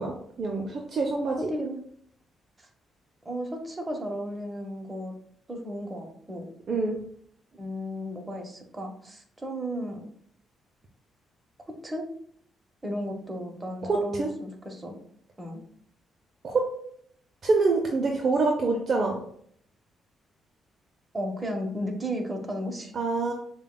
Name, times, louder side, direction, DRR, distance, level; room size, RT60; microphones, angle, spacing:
voice 1, 0.0-1.5 6.7-7.0 13.8-14.3 16.4-16.6 17.4-19.2 22.9-23.3, right 3 dB, 50° right, 1 dB, 0.5 m, -26 dB
voice 2, 1.5-1.8 3.2-5.1 5.5-6.5 7.5-10.1 11.8-12.1 12.8-15.0 15.4-15.6 21.1-22.9, equal, 20° right, 2 dB, 1.0 m, -34 dB
6.7 x 2.3 x 2.2 m, 0.64 s
cardioid pair, 80°, 0 cm